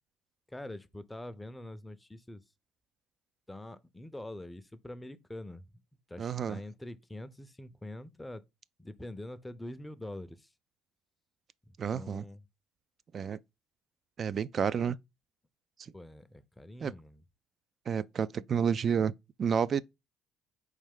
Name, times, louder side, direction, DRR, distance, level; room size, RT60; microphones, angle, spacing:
voice 1, 0.5-2.4 3.5-5.6 6.1-8.4 8.8-10.5 11.7-12.4 15.9-17.2, left 1 dB, 10° left, 0.6 m, -44 dB
voice 2, 6.2-6.6 11.8-12.2 13.1-13.4 14.2-15.0 16.8-16.9 17.9-19.1 19.4-19.8, right 7 dB, 45° right, 0.3 m, -30 dB
4.5 x 3.3 x 3.6 m
supercardioid pair, 75°, 0 cm